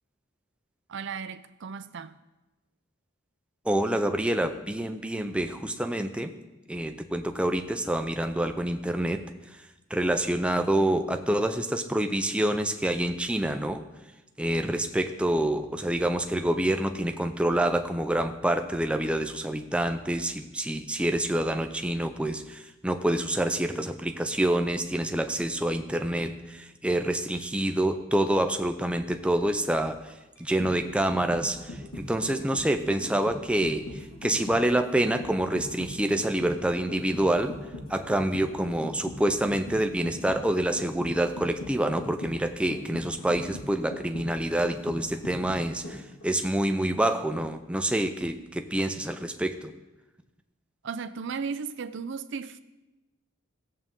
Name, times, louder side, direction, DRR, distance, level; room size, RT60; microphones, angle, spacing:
voice 1, 0.9-2.1 50.8-52.6, right 5 dB, 55° right, 0.5 m, -35 dB
voice 2, 3.6-6.3 6.7-13.8 14.4-37.6 37.9-49.7, right 1 dB, 5° right, 0.5 m, -27 dB
sound 1, 30.4-46.2 46.6-46.7, left 1 dB, 80° left, 2.0 m, -40 dB
16.5 x 7.6 x 3.7 m
head